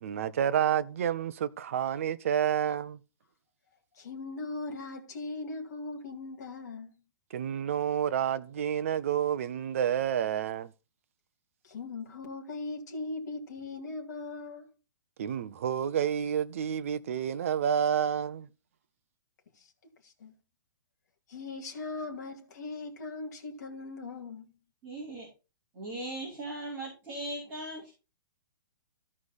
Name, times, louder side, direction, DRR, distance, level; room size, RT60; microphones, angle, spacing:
voice 1, 0.0-3.0 7.3-10.7 15.2-18.5, right 9 dB, 35° right, 0.6 m, -29 dB
voice 2, 3.9-6.9 11.6-14.7 19.6-19.7 20.0-20.4 21.3-24.5, left 3 dB, 50° left, 2.2 m, -39 dB
voice 3, 24.8-25.3 25.7-27.9, right 1 dB, 15° right, 4.1 m, -38 dB
14.5 x 4.9 x 4.1 m
hypercardioid pair, 180°, 12 cm